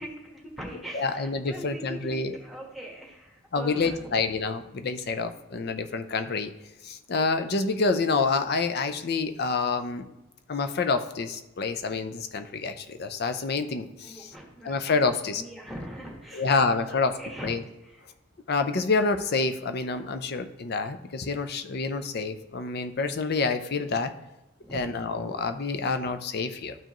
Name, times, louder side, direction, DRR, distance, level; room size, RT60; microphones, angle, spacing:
voice 1, 0.0-4.1 14.0-18.0 24.6-24.9, equal, ahead, -1 dB, 1.3 m, -42 dB
voice 2, 0.9-2.4 3.5-6.5 6.8-10.1 10.5-14.3 14.6-15.4 16.3-17.2 17.4-17.6 18.5-24.1 24.7-26.8, left 4 dB, 55° left, 9 dB, 0.5 m, -27 dB
12.0 x 4.6 x 3.0 m, 0.97 s
head